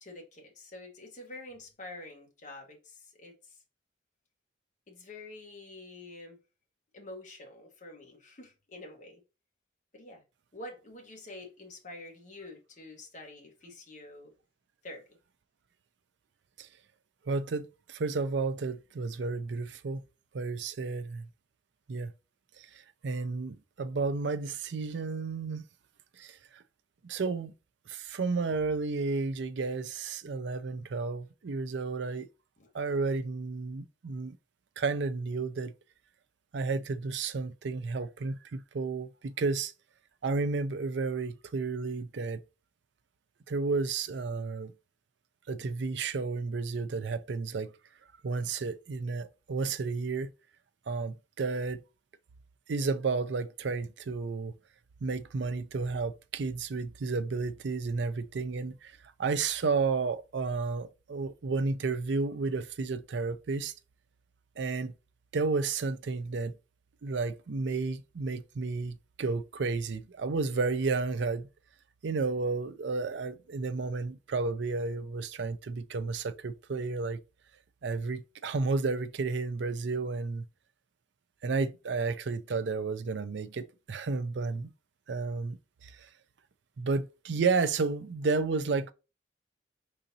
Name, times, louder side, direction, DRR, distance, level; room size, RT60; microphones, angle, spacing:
voice 1, 0.0-3.6 4.9-6.4 6.9-9.2 9.9-10.2 10.5-14.3 14.8-15.2 32.6-32.7, left 2 dB, 40° left, 1.3 m, -47 dB
voice 2, 17.3-20.0 20.3-21.3 21.9-22.1 22.6-25.7 26.2-26.6 27.0-27.5 27.9-32.3 32.7-34.4 34.8-35.7 36.5-39.7 40.2-42.4 43.5-44.7 45.5-47.7 48.2-50.3 50.9-51.8 52.7-54.5 55.0-58.9 59.2-63.7 64.6-64.9 65.3-66.5 67.0-71.5 72.0-77.2 77.8-80.5 81.4-84.7 85.1-86.1 86.8-88.9, right 4 dB, 70° right, 0.4 m, -32 dB
4.9 x 3.9 x 2.7 m
head